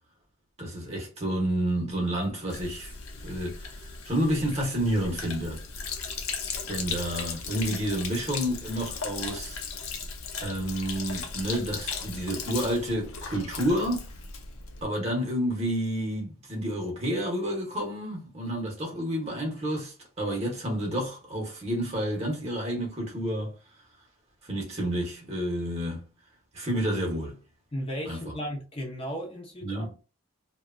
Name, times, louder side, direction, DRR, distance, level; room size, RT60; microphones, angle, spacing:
voice 1, 0.6-2.9 3.2-5.6 6.7-9.6 10.4-14.1 14.8-23.5 24.4-26.0 26.5-27.4 28.0-28.3 29.6-29.9, equal, 30° right, 0.8 m, -30 dB
Sink (filling or washing), 2.5-14.8, left 5 dB, 80° left, 0.6 m, -37 dB
voice 2, 27.7-30.0, equal, 25° left, 0.6 m, -35 dB
2.8 x 2.2 x 2.4 m
head